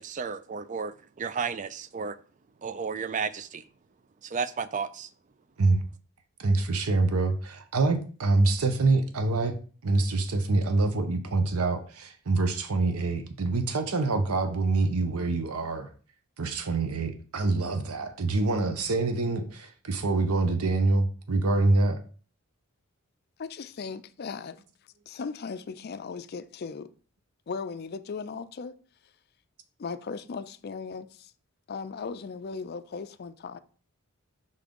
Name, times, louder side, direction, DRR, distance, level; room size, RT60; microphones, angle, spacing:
voice 1, 0.0-2.2 2.6-3.6 4.2-5.1, right 5 dB, 35° right, 0.3 m, -33 dB
voice 2, 6.4-9.6 9.8-15.9 16.4-22.0, right 3 dB, 80° right, 0.8 m, -25 dB
voice 3, 23.4-24.6 25.1-26.9 27.5-28.8 29.8-31.3 31.7-33.6, left 5 dB, 45° left, 0.4 m, -37 dB
5.5 x 3.7 x 5.2 m
head